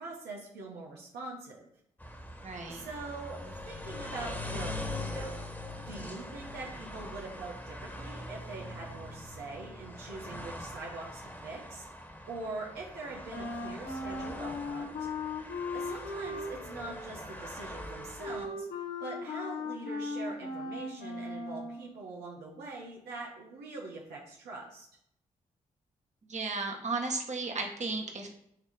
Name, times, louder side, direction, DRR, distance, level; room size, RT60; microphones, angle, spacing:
voice 1, 0.0-1.7 2.7-5.4 5.9-11.9 12.3-15.1 15.7-18.7 19.0-24.9, right 3 dB, 80° right, -3 dB, 1.2 m, -43 dB
sound 1, 2.0-18.5, left 1 dB, 10° left, 1.6 m, -42 dB
voice 2, 2.4-2.8 26.3-28.3, right 3 dB, 45° right, 1 dB, 1.7 m, -34 dB
Wind instrument woodwind instrument, 13.3-21.9, left 3 dB, 75° left, 1.4 m, -38 dB
8.1 x 3.2 x 5.1 m, 0.72 s
supercardioid pair, 40°, 17 cm